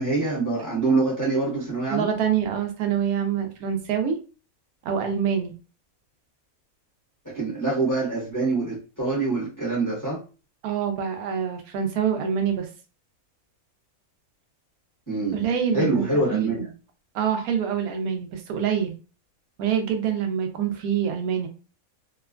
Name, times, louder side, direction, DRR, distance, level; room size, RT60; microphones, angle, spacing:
voice 1, 0.0-2.1 7.2-10.2 15.1-15.4 15.7-16.7, right 3 dB, 15° left, -7 dB, 1.0 m, -25 dB
voice 2, 1.9-4.2 4.8-5.5 10.6-12.7 15.3-16.7 17.1-18.9 19.6-21.5, right 8 dB, 85° right, 5 dB, 1.1 m, -25 dB
2.9 x 2.1 x 2.3 m, 0.34 s
omnidirectional pair, 1.5 m